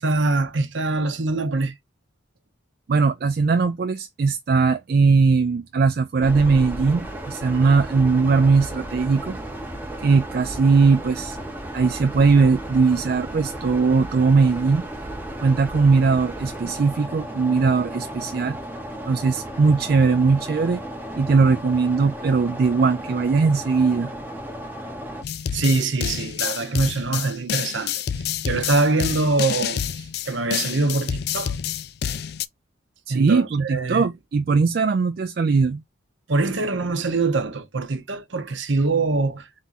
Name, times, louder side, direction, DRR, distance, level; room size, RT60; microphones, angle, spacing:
voice 1, 0.0-1.7 25.5-31.6 33.1-34.1 36.3-39.5, right 3 dB, 65° right, 0.8 m, -24 dB
voice 2, 2.9-9.4 10.0-11.4 11.7-14.8 15.4-18.6 19.1-20.8 21.2-24.1 33.1-35.8, right 4 dB, 50° right, 0.3 m, -19 dB
sound 1, 6.2-25.2, right 1 dB, 10° right, 0.7 m, -34 dB
sound 2, 25.2-32.5, left 9 dB, 50° left, 0.3 m, -28 dB
3.7 x 2.7 x 3.9 m
head